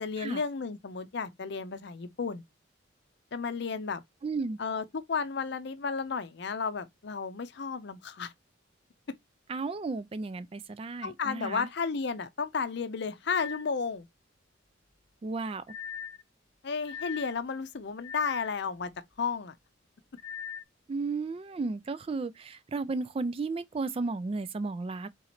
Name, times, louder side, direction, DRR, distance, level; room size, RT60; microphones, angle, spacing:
voice 1, 0.0-2.4 3.3-4.0 4.6-8.3 11.0-14.1 16.6-18.9 19.2-19.6, left 5 dB, 60° left, 0.6 m, -33 dB
voice 2, 4.2-4.6 9.5-11.7 15.2-15.6 20.9-25.1, right 3 dB, 30° right, 0.3 m, -34 dB
sound 1, 13.3-13.7 15.7-16.2 16.8-17.4 18.0-18.6 20.2-20.6, left 8 dB, 20° left, 1.1 m, -40 dB
3.8 x 2.9 x 4.2 m
head